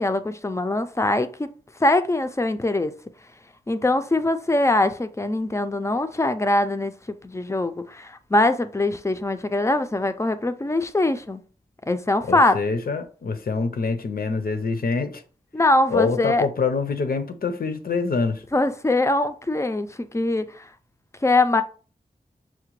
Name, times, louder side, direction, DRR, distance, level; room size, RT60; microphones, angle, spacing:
voice 1, 0.0-1.5 1.8-2.9 3.7-11.4 11.9-12.6 15.5-16.5 18.5-20.7 21.2-21.6, left 2 dB, 20° left, 0.4 m, -22 dB
voice 2, 12.3-15.2 15.9-18.4, left 4 dB, 70° left, 0.6 m, -25 dB
5.7 x 2.1 x 3.0 m
wide cardioid pair, 80°, 16 cm